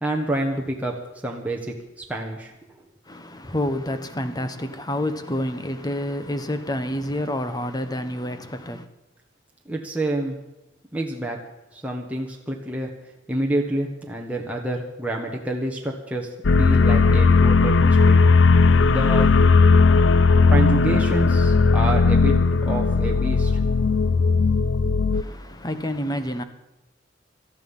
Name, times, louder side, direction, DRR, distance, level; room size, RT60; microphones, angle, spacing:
voice 1, 0.0-0.9 1.2-1.7 2.1-2.5 9.6-10.4 10.9-11.4 11.7-12.9 13.3-16.3 16.6-18.2 18.9-19.3 20.5-22.4 22.6-23.5, right 1 dB, 10° right, 1.4 m, -28 dB
voice 2, 3.1-8.9 25.1-26.4, left 1 dB, 20° left, 1.1 m, -28 dB
sound 1, 16.4-25.2, left 4 dB, 75° left, 0.6 m, -17 dB
18.5 x 13.0 x 5.5 m
head